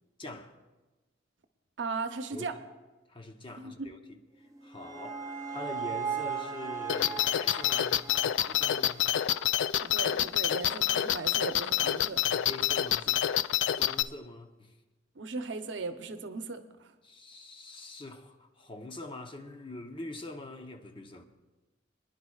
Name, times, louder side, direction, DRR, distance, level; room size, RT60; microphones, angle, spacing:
voice 1, 0.2-0.5 2.3-2.5 3.1-4.0 4.6-9.0 12.2-13.2 13.8-14.7 17.0-21.2, left 1 dB, 30° left, 0.8 m, -44 dB
voice 2, 1.8-2.6 3.6-3.9 9.8-12.2 15.2-16.9, right 3 dB, 80° right, 0.7 m, -37 dB
sound 1, 4.4-9.6, right 6 dB, 20° right, 0.8 m, -38 dB
sound 2, 6.9-14.0, left 11 dB, 85° left, 0.3 m, -27 dB
25.0 x 10.5 x 2.4 m
head